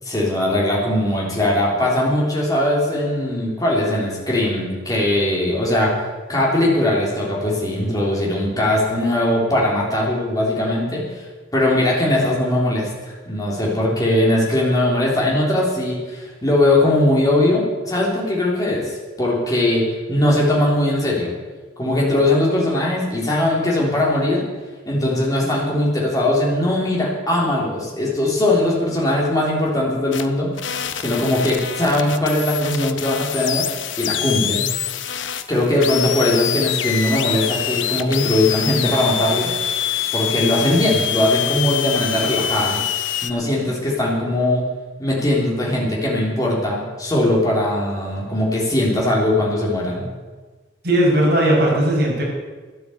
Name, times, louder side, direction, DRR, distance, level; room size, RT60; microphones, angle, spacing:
voice 1, 0.0-5.9 6.3-11.2 11.5-12.9 13.2-21.3 21.8-24.5 24.8-33.7 34.0-34.7 35.5-39.5 40.1-42.8 43.2-44.7 45.0-50.1, left 1 dB, 20° left, -4 dB, 3.4 m, -20 dB
sound 1, 30.1-30.3 30.6-43.3, left 10 dB, 75° left, 0.8 m, -25 dB
voice 2, 50.8-52.2, right 1 dB, 55° right, -4 dB, 6.2 m, -17 dB
12.5 x 10.0 x 8.1 m, 1.3 s
head